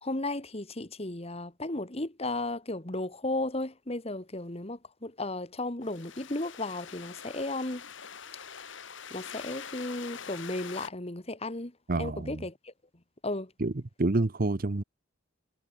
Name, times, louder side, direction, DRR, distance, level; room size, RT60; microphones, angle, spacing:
voice 1, 0.0-7.8 9.1-12.7 13.2-13.5, left 2 dB, 30° left, 1.8 m, -34 dB
sound 1, 5.8-10.9, left 7 dB, 65° left, 1.8 m, -44 dB
voice 2, 11.9-12.4 13.6-13.7 14.0-14.8, right 2 dB, 45° right, 0.8 m, -28 dB
head